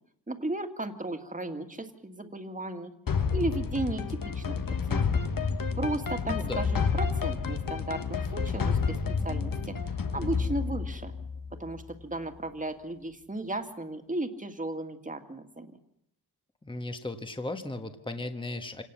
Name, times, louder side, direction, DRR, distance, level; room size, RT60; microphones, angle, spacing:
voice 1, 0.3-2.9 3.3-4.6 4.9-5.1 5.7-9.0 9.2-11.1 11.6-15.8, right 2 dB, 20° right, 6 dB, 2.1 m, -35 dB
sound 1, 3.1-11.9, left 5 dB, 55° left, 1.5 m, -30 dB
voice 2, 6.2-6.7 16.6-18.8, left 2 dB, 10° left, 7 dB, 1.4 m, -36 dB
27.5 x 18.5 x 7.3 m, 0.75 s
wide cardioid pair, 120°, 41 cm